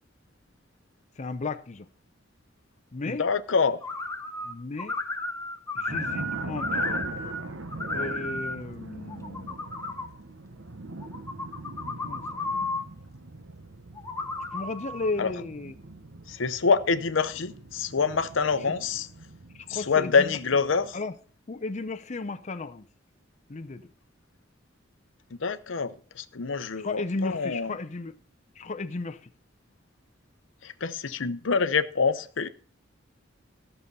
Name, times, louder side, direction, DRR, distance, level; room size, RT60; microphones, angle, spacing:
voice 1, 1.2-1.9 2.9-3.3 4.4-5.0 5.7-6.9 7.9-9.5 12.0-12.2 12.5-12.8 14.5-15.7 18.6-18.7 19.5-20.4 20.9-21.1 21.5-22.9 23.5-23.9 26.8-28.2 28.6-29.2, left 3 dB, 35° left, 0.6 m, -34 dB
voice 2, 3.1-3.8 15.2-15.3 16.3-19.1 19.7-21.0 25.4-27.7 30.6-32.5, left 5 dB, 75° left, 0.7 m, -26 dB
sound 1, 3.8-4.5 4.8-7.4 7.7-8.6 9.1-10.1 11.0-12.8 14.0-15.1, left 2 dB, 15° left, 1.2 m, -33 dB
sound 2, 5.9-20.9, right 2 dB, 85° right, 1.1 m, -42 dB
14.0 x 6.8 x 5.4 m
head